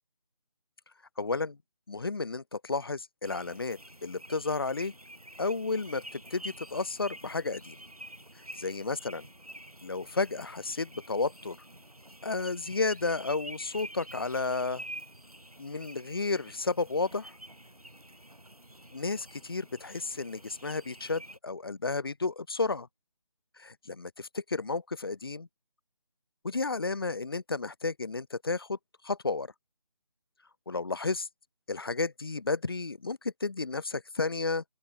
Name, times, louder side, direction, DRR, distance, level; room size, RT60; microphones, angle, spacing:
voice 1, 1.2-1.6 1.9-4.9 5.4-7.8 8.6-9.3 9.8-11.6 12.2-14.8 15.6-17.3 18.9-22.9 23.6-25.5 26.4-28.8 29.0-29.5 30.7-31.3 31.7-34.6, left 3 dB, 40° left, 0.4 m, -32 dB
sound 1, 3.2-21.4, right 1 dB, 85° right, 6.1 m, -48 dB
open air
figure-of-eight pair, 155°, 18 cm